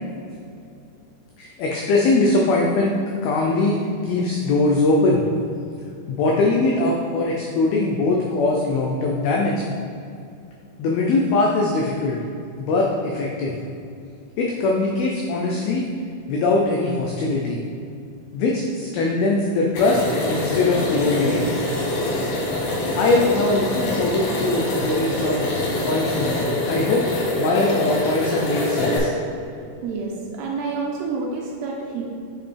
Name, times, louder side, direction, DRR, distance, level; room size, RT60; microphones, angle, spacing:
voice 1, 1.4-3.0 3.2-5.2 6.1-9.6 10.8-12.2 12.6-13.5 14.4-15.9 16.3-17.6 18.3-20.0 20.3-21.4 23.0-25.5 25.8-27.0 27.4-29.1, left 2 dB, 85° left, -2 dB, 2.2 m, -21 dB
sound 1, 19.8-29.0, left 1 dB, 65° left, 2.6 m, -24 dB
voice 2, 29.8-32.0, right 4 dB, 80° right, -1 dB, 2.5 m, -28 dB
7.5 x 5.9 x 3.4 m, 2.5 s
omnidirectional pair, 5.2 m